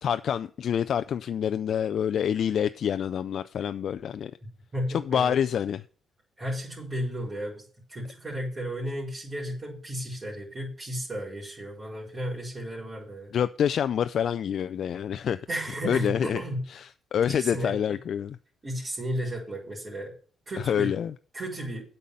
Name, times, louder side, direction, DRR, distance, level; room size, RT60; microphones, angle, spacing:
voice 1, 0.0-4.3 4.9-5.8 13.3-15.4 15.8-16.4 16.7-18.4 20.6-21.1, left 8 dB, 60° left, 0.4 m, -27 dB
voice 2, 4.4-5.3 6.4-13.3 15.5-16.6 17.4-18.0 18.6-20.1 20.5-20.9 21.3-21.8, equal, 35° right, 4.2 m, -34 dB
8.3 x 5.5 x 7.6 m
cardioid pair, 90°, 0 cm